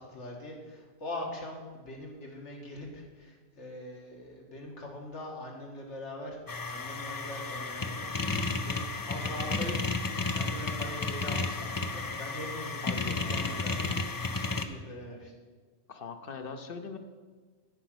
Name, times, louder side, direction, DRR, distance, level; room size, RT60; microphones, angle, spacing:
voice 1, 0.0-6.4 6.7-10.0 10.3-13.9 14.3-15.3, left 1 dB, 75° left, 0 dB, 2.1 m, -42 dB
sound 1, 6.5-14.7, left 3 dB, 35° left, 0.3 m, -32 dB
voice 2, 12.8-13.4 15.9-17.0, left 5 dB, 55° left, 7 dB, 0.9 m, -41 dB
14.0 x 5.1 x 6.1 m, 1.4 s
omnidirectional pair, 1.2 m